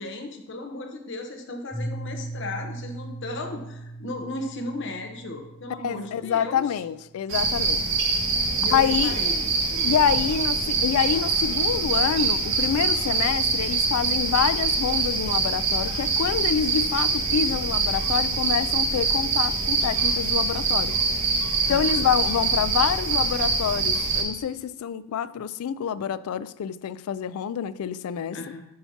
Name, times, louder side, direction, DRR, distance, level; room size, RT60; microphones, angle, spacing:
voice 1, 0.0-6.6 8.5-10.0 21.7-22.0 28.3-28.6, left 2 dB, 55° left, 0.9 m, -36 dB
Piano, 1.7-7.3, right 1 dB, 10° right, 2.5 m, -39 dB
voice 2, 5.8-7.9 8.7-9.1 9.8-21.0 21.7-28.4, left 8 dB, 80° left, 0.3 m, -26 dB
sound 1, 7.3-24.2, right 4 dB, 55° right, 1.7 m, -24 dB
10.0 x 5.7 x 2.8 m
head